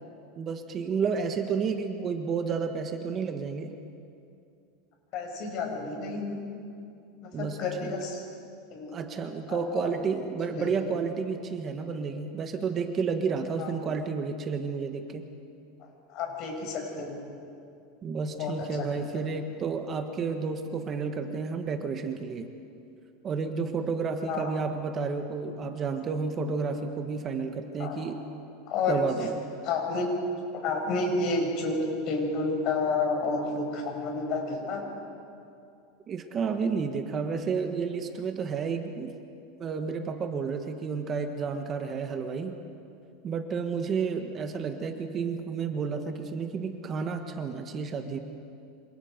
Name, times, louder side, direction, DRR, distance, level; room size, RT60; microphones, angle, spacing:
voice 1, 0.4-3.8 7.3-7.9 8.9-15.3 18.0-22.4 23.2-28.2 28.9-29.3 36.1-39.1 39.6-42.6 43.2-48.2, right 5 dB, 30° right, 6 dB, 1.4 m, -31 dB
voice 2, 5.1-6.4 7.2-8.2 8.7-9.0 9.5-9.9 10.5-10.7 13.6-13.7 15.8-17.2 18.3-18.9 19.1-19.3 24.3-24.5 27.8-28.0 28.7-29.0 29.6-30.1 30.6-31.8 32.0-34.8, left 3 dB, 45° left, 1 dB, 6.1 m, -30 dB
27.5 x 26.5 x 5.2 m, 2.5 s
supercardioid pair, 145°, 0 cm